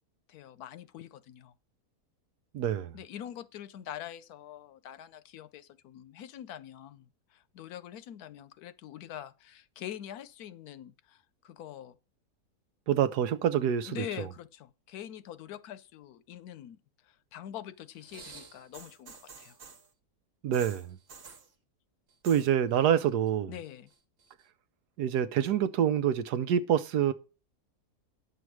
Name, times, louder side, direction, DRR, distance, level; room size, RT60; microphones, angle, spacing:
voice 1, 0.3-1.5 2.9-12.0 13.8-16.8 17.0-19.6 23.5-23.9, left 11 dB, 75° left, 1.1 m, -44 dB
voice 2, 2.5-3.0 12.9-14.0 20.4-21.0 22.2-23.5 25.0-27.1, right 9 dB, 90° right, 1.3 m, -26 dB
sound 1, 17.9-19.9 20.5-21.5 22.1-22.5 22.8-23.3 23.6-24.4 25.2-25.3, right 5 dB, 55° right, 1.4 m, -50 dB
9.8 x 7.1 x 4.7 m
omnidirectional pair, 1.7 m